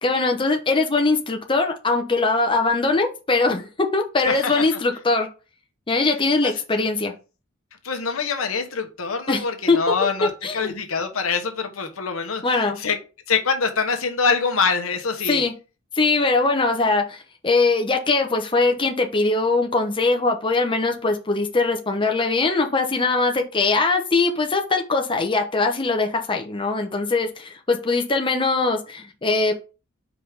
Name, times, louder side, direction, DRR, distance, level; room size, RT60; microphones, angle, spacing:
voice 1, 0.0-5.3 5.9-7.1 9.3-9.8 10.4-10.7 12.4-12.8 15.3-15.5 16.0-29.5, left 3 dB, 25° left, 0.9 m, -21 dB
voice 2, 4.3-4.7 6.4-6.6 7.8-13.0 13.3-15.4, left 5 dB, 90° left, 1.2 m, -24 dB
5.0 x 4.2 x 5.1 m
head